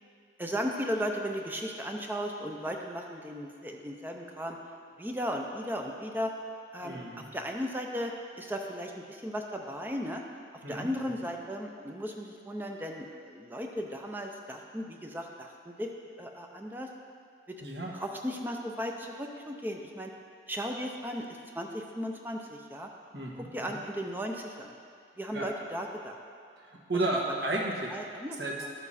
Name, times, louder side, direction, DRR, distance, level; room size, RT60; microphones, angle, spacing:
voice 1, 0.4-4.6 5.0-6.3 6.7-7.0 7.3-8.1 8.4-10.2 10.7-15.9 16.2-16.9 17.9-20.1 20.5-22.9 23.3-24.7 25.2-26.2 27.9-28.7, equal, 10° right, 2 dB, 0.5 m, -36 dB
voice 2, 6.8-7.3 10.6-11.1 17.6-17.9 23.1-23.8 25.3-25.5 26.6-28.0 28.4-28.5, right 2 dB, 60° right, -2 dB, 1.5 m, -33 dB
12.5 x 7.0 x 4.2 m, 2.2 s
head